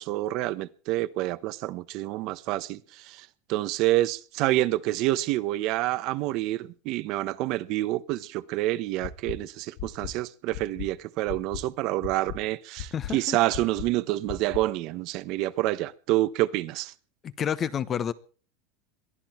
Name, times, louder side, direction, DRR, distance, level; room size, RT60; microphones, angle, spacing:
voice 1, 0.0-16.9, right 16 dB, 50° right, 1.0 m, -28 dB
sound 1, 9.0-9.4 9.8-10.1 10.5-10.9 11.3-11.6 12.0-12.4 12.8-13.1 13.5-13.9 14.3-14.6, left 13 dB, 55° left, 1.9 m, -36 dB
voice 2, 12.9-13.4 17.2-18.1, left 8 dB, 25° left, 1.0 m, -29 dB
22.5 x 14.0 x 4.5 m
supercardioid pair, 145°, 0 cm